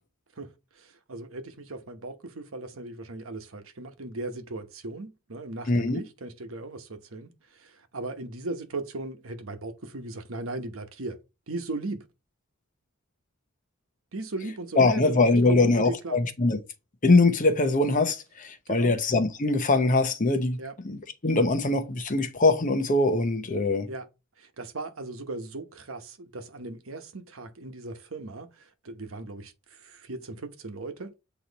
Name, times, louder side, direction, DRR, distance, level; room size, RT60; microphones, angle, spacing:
voice 1, 0.4-11.2 11.5-12.1 14.1-16.2 18.7-19.0 20.6-20.7 23.9-24.1 24.4-31.2, right 2 dB, 85° right, 1.1 m, -37 dB
voice 2, 5.7-6.0 14.8-16.6 17.0-20.6 20.8-23.9, left 2 dB, 40° left, 0.8 m, -22 dB
8.0 x 3.1 x 4.1 m
head